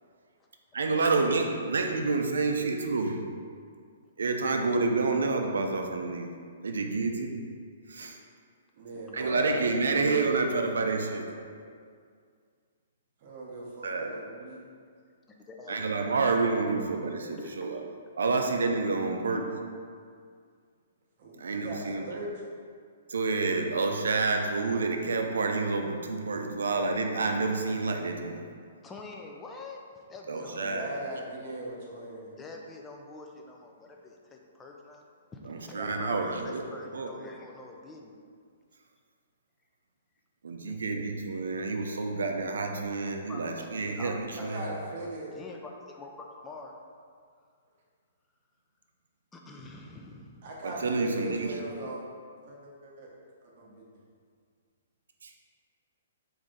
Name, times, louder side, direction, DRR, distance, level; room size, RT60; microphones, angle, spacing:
voice 1, 0.7-3.2 4.2-6.3 6.6-7.4 7.9-8.2 9.1-11.3 13.8-14.2 15.7-17.8 18.1-19.6 21.4-22.1 23.1-28.4 30.3-30.9 35.5-36.6 36.9-37.1 40.4-44.7 50.6-51.5 55.2-55.3, right 3 dB, 90° right, 4 dB, 0.4 m, -29 dB
voice 2, 8.7-11.5 13.2-14.6 21.2-22.4 30.5-32.3 35.7-36.9 44.5-45.3 50.4-52.0 52.4-53.1 53.4-53.9, right 1 dB, 45° right, -3 dB, 0.8 m, -40 dB
voice 3, 15.5-16.0 17.4-17.7 28.8-30.6 32.4-35.0 35.3-38.1 40.7-40.8 43.2-44.7 45.3-46.8 49.3-50.4, left 3 dB, 15° left, 1 dB, 0.3 m, -46 dB
3.2 x 2.6 x 3.7 m, 2.1 s
hypercardioid pair, 150°, 0 cm